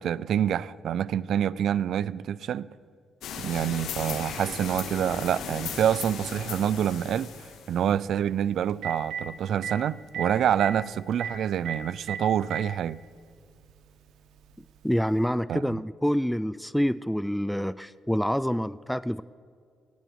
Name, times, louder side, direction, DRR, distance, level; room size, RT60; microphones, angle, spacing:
voice 1, 0.0-2.7 3.4-13.0 15.5-15.8, right 9 dB, 70° right, 0.4 m, -27 dB
sound 1, 3.2-7.9, left 6 dB, 80° left, 1.8 m, -37 dB
Telephone, 6.0-6.1 8.3-8.4 8.7-9.2 9.6-9.7 10.1-10.3 10.5-10.7 11.2-11.3 11.7-11.8 12.1-12.6 13.6-13.7 15.2-15.3, right 8 dB, 85° right, 1.3 m, -33 dB
voice 2, 14.8-19.2, equal, ahead, 0.3 m, -27 dB
18.0 x 8.1 x 7.9 m
cardioid pair, 90°, 0 cm